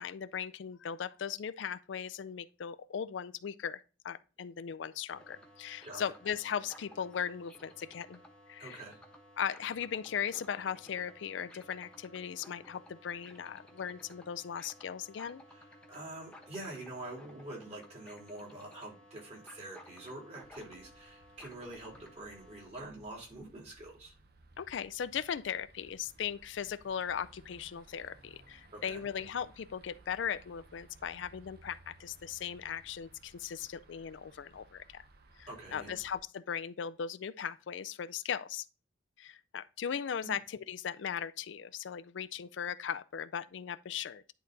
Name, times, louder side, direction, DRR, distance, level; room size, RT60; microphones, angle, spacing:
voice 1, 0.0-8.2 8.5-8.8 9.4-15.4 24.6-35.0 35.4-38.7 39.2-44.3, left 8 dB, 80° left, 0.4 m, -38 dB
sound 1, 5.1-22.7, left 1 dB, 5° left, 1.2 m, -56 dB
voice 2, 8.6-9.0 15.5-24.1 28.7-29.1 35.5-36.0 40.2-40.4, right 2 dB, 35° right, 3.1 m, -46 dB
sound 2, 20.4-36.2, right 2 dB, 60° right, 0.9 m, -60 dB
10.5 x 4.0 x 3.9 m
head